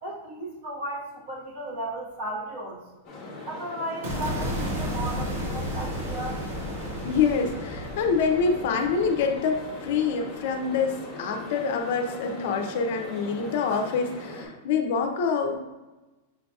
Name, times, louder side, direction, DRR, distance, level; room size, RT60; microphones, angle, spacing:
voice 1, 0.0-2.8 3.5-6.4, right 1 dB, 50° right, -4 dB, 1.0 m, -35 dB
sound 1, 3.0-14.5, left 2 dB, 15° left, 0.9 m, -40 dB
sound 2, 4.0-10.3, equal, 75° right, 1.4 m, -33 dB
voice 2, 7.0-15.6, left 5 dB, 50° left, 4 dB, 0.4 m, -26 dB
6.2 x 2.7 x 2.3 m, 1.1 s
supercardioid pair, 175°, 0 cm